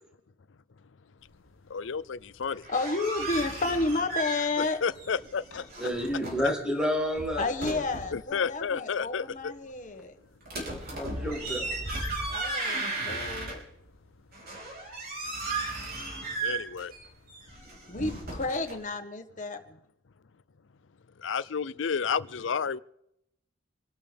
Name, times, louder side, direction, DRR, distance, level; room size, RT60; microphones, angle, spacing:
voice 1, 1.7-2.7 4.6-5.7 8.1-9.5 16.4-16.9 21.2-22.8, left 6 dB, 70° left, 0.5 m, -31 dB
sound 1, 2.5-4.7 5.0-6.5 7.0-8.2 10.4-13.9 14.3-18.8, right 2 dB, 55° right, 5.2 m, -35 dB
voice 2, 2.7-4.8 7.4-10.2 12.3-13.7 17.9-19.6, left 3 dB, 40° left, 1.6 m, -31 dB
voice 3, 5.8-7.8 10.6-11.6, equal, 5° right, 2.4 m, -30 dB
27.0 x 12.5 x 3.5 m
head